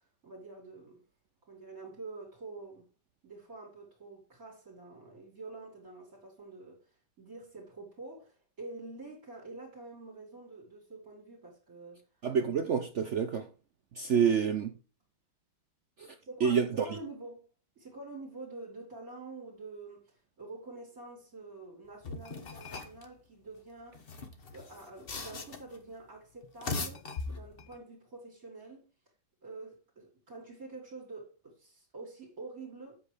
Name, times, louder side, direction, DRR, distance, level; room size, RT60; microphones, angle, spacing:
voice 1, 0.2-1.0 1.5-2.9 3.2-6.8 7.2-12.0 14.1-14.4 16.2-17.5 17.8-20.0 20.4-24.0 24.5-28.8 29.4-33.0, right 3 dB, 45° right, 2.9 m, -47 dB
voice 2, 12.2-13.5 14.0-14.7 16.0-16.1 16.4-16.7, right 7 dB, 65° right, 0.7 m, -27 dB
sound 1, 22.0-23.0 23.9-25.8 26.4-27.7, left 4 dB, 40° left, 0.9 m, -39 dB
8.0 x 6.3 x 4.9 m
omnidirectional pair, 2.0 m